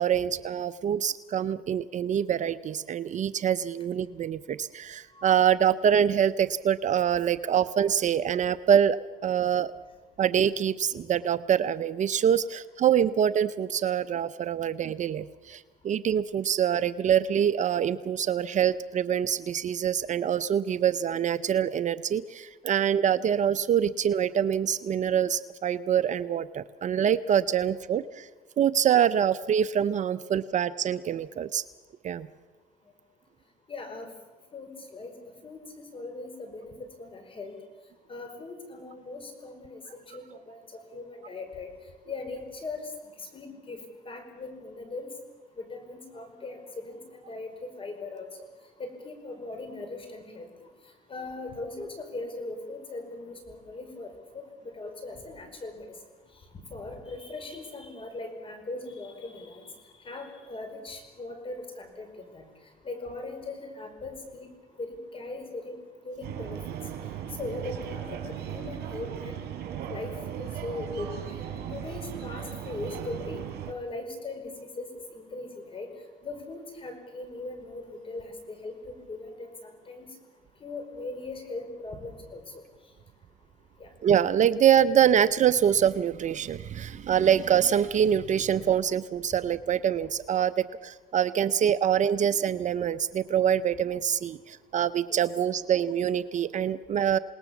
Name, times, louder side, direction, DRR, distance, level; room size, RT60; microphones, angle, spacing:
voice 1, 0.0-9.0 9.2-9.7 10.2-28.3 28.6-31.6 32.0-32.3 84.0-97.2, right 9 dB, 45° right, 14 dB, 0.7 m, -25 dB
voice 2, 33.7-34.1 34.5-35.1 35.4-37.5 38.1-40.6 40.9-41.7 42.1-42.9 43.3-45.1 45.6-48.3 48.8-50.5 51.1-54.1 54.3-55.8 56.7-59.7 60.1-62.4 62.8-64.5 64.8-65.8 66.0-66.6 67.4-69.4 69.9-70.1 70.6-71.1 71.6-73.4 73.7-74.9 75.1-75.9 76.2-80.1 80.6-82.6 83.8-83.9, left 2 dB, 30° left, 6 dB, 5.2 m, -39 dB
sound 1, 66.2-73.7, right 9 dB, 75° right, 4.3 m, -37 dB
28.0 x 19.0 x 7.2 m, 1.2 s
cardioid pair, 110°, 17 cm